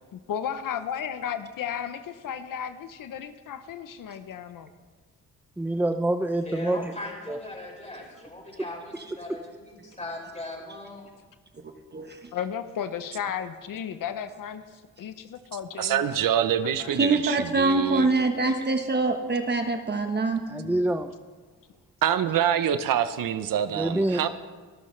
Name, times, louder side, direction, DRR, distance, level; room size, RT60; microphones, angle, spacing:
voice 1, 0.1-4.7 12.3-16.2 16.8-16.9, left 8 dB, 75° left, 10 dB, 0.8 m, -34 dB
voice 2, 5.6-6.9 7.3-7.4 20.5-21.1 23.7-24.2, right 1 dB, 5° right, 8 dB, 0.5 m, -26 dB
voice 3, 6.4-11.0, left 1 dB, 20° left, -2 dB, 5.7 m, -39 dB
voice 4, 15.8-18.1 22.0-24.3, right 9 dB, 75° right, 11 dB, 0.8 m, -25 dB
voice 5, 17.0-20.4, right 3 dB, 30° right, 5 dB, 1.2 m, -24 dB
24.5 x 13.5 x 3.3 m, 1.5 s
cardioid pair, 100°, 33 cm